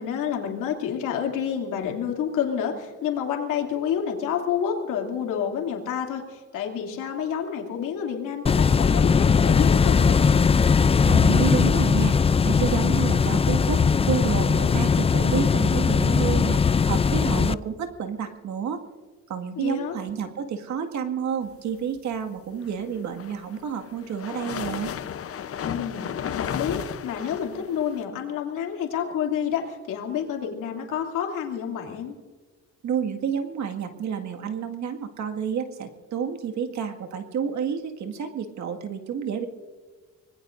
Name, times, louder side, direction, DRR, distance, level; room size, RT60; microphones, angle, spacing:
voice 1, 0.0-10.4 19.6-19.9 25.6-32.1, left 8 dB, 90° left, 1 dB, 2.8 m, -29 dB
sound 1, 8.5-17.5, left 5 dB, 20° left, 0.4 m, -20 dB
voice 2, 11.0-12.2 12.4-18.8 19.3-24.9 32.8-39.5, right 7 dB, 70° right, 5 dB, 1.9 m, -30 dB
sound 2, 22.9-28.0, left 8 dB, 50° left, 0.8 m, -33 dB
25.0 x 19.5 x 2.6 m, 1.4 s
cardioid pair, 90°, 30 cm